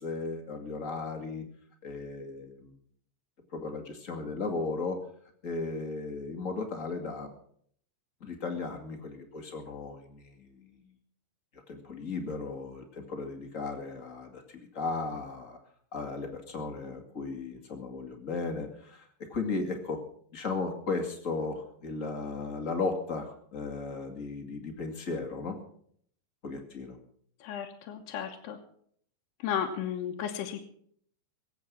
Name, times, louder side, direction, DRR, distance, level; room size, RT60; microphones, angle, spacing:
voice 1, 0.0-1.4 1.8-2.7 3.5-5.0 5.4-7.3 8.2-10.9 11.7-15.6 15.9-20.0 20.3-25.6 26.4-27.0, left 3 dB, 35° left, 3 dB, 1.2 m, -36 dB
voice 2, 27.4-28.6 29.4-30.6, left 8 dB, 70° left, 0 dB, 3.1 m, -34 dB
23.5 x 8.2 x 6.2 m, 0.64 s
omnidirectional pair, 5.1 m